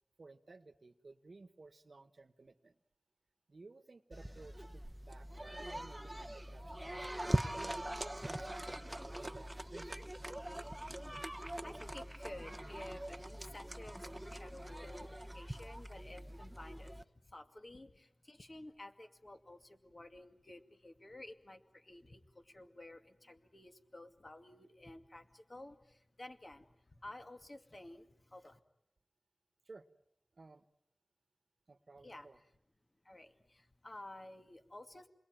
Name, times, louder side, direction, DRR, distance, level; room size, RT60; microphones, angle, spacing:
voice 1, 0.2-2.8 3.5-10.2 29.6-29.9 30.3-30.7 31.7-32.4, right 3 dB, 70° right, 11 dB, 1.4 m, -56 dB
sound 1, 4.1-17.0, right 1 dB, 15° right, 1.0 m, -42 dB
voice 2, 11.2-28.6 32.0-32.3 33.0-35.1, left 1 dB, 45° left, 6 dB, 2.3 m, -53 dB
29.0 x 21.5 x 9.2 m, 0.79 s
wide cardioid pair, 65°, 0 cm